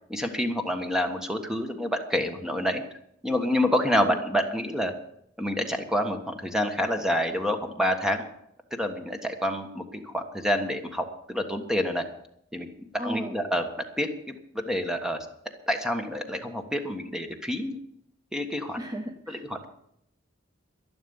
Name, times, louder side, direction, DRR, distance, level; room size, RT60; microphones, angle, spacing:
voice 1, 0.1-2.8 3.2-4.9 5.4-8.2 8.8-12.0 12.5-12.7 13.0-13.6 14.0-15.2 15.7-17.8 18.3-18.8 19.3-19.7, equal, 5° right, 5 dB, 1.4 m, -28 dB
voice 2, 13.0-13.3 18.8-19.4, equal, 20° right, 4 dB, 1.0 m, -34 dB
11.5 x 11.5 x 7.2 m, 0.74 s
head